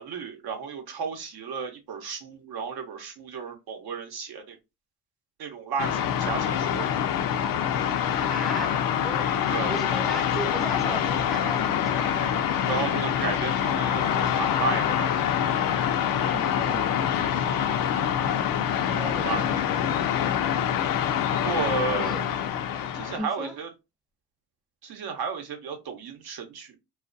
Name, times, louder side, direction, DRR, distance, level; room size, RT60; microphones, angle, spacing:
voice 1, 0.0-4.6 5.4-6.9 9.5-9.8 12.7-15.5 18.9-19.4 21.3-22.3 22.9-23.7 24.8-26.8, right 5 dB, 60° right, 0.8 m, -33 dB
sound 1, 5.8-23.2, left 9 dB, 55° left, 0.5 m, -25 dB
voice 2, 8.2-9.4 9.7-12.5 16.1-17.0 18.9-19.6 21.9-22.2 23.2-23.6, right 1 dB, ahead, 0.6 m, -36 dB
2.3 x 2.2 x 2.5 m
supercardioid pair, 60°, 42 cm